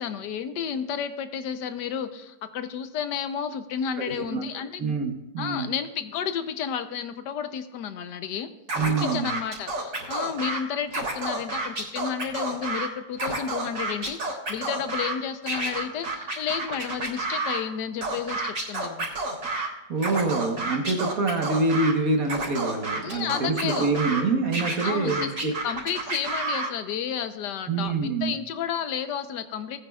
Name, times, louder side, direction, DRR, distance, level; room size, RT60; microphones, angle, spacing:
voice 1, 0.0-4.8 5.4-8.5 8.9-19.1 23.0-23.9 24.8-25.3 25.6-29.8, left 8 dB, 80° left, 10 dB, 1.4 m, -32 dB
voice 2, 4.1-5.7 8.8-9.3 19.9-25.5 27.7-28.3, right 3 dB, 55° right, 3 dB, 1.6 m, -26 dB
Scratching (performance technique), 8.7-10.6 10.9-12.9 13.1-15.1 15.5-17.6 18.0-19.7 20.0-21.9 22.3-24.2 24.5-26.7, right 3 dB, 85° right, 4.2 m, -30 dB
19.0 x 9.4 x 2.4 m, 1.0 s
omnidirectional pair, 1.8 m